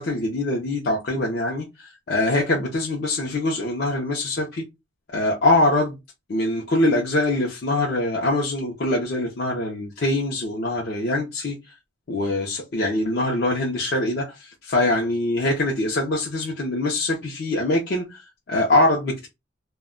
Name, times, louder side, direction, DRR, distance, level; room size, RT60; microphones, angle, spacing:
voice 1, 0.0-4.6 5.1-6.0 6.3-11.6 12.1-19.3, left 2 dB, 50° left, 0.5 m, -23 dB
2.1 x 2.1 x 3.5 m
head